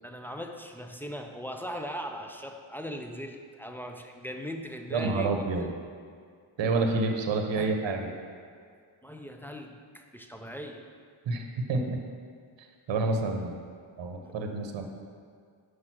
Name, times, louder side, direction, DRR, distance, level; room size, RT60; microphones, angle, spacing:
voice 1, 0.0-5.5 7.6-7.8 9.0-10.9 14.2-14.3, equal, 5° left, 4 dB, 0.5 m, -39 dB
voice 2, 4.9-5.7 6.6-8.1 11.3-12.0 12.9-13.6 14.0-14.9, right 3 dB, 60° right, 3 dB, 1.0 m, -28 dB
5.6 x 5.1 x 6.2 m, 2.1 s
cardioid pair, 80°, 50 cm